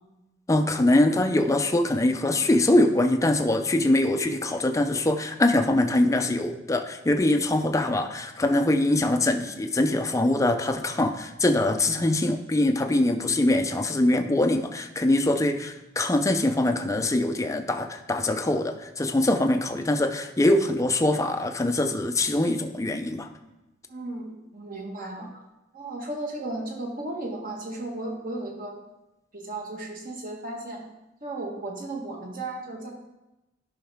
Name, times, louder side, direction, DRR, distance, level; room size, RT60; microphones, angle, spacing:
voice 1, 0.5-23.3, left 1 dB, 15° left, 6 dB, 0.5 m, -23 dB
voice 2, 23.9-25.4 25.7-28.8 29.3-30.8 31.2-32.9, right 2 dB, 45° right, 0 dB, 1.6 m, -35 dB
11.5 x 5.4 x 3.5 m, 0.98 s
head